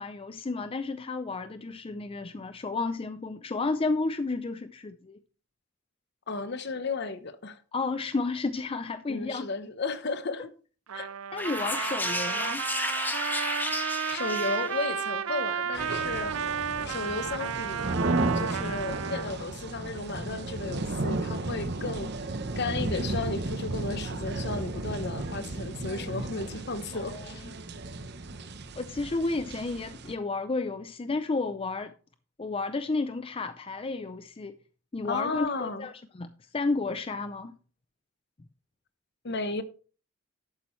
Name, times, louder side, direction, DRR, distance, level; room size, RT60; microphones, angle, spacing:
voice 1, 0.0-5.2 7.7-9.5 11.3-12.6 26.9-27.5 28.8-31.9 32.4-34.6 34.9-37.6, left 3 dB, 25° left, 0.4 m, -32 dB
voice 2, 6.3-7.6 9.1-10.5 10.9-11.1 14.1-16.4 16.8-18.0 18.3-22.1 22.6-27.5 35.0-35.9 39.2-39.6, left 3 dB, 55° left, 0.9 m, -34 dB
Trumpet, 10.9-19.3, right 7 dB, 85° right, 0.5 m, -33 dB
sound 1, 11.4-15.0, left 1 dB, 10° left, 1.3 m, -32 dB
sound 2, 15.7-30.1, right 2 dB, 55° right, 0.8 m, -33 dB
11.5 x 8.5 x 3.2 m
head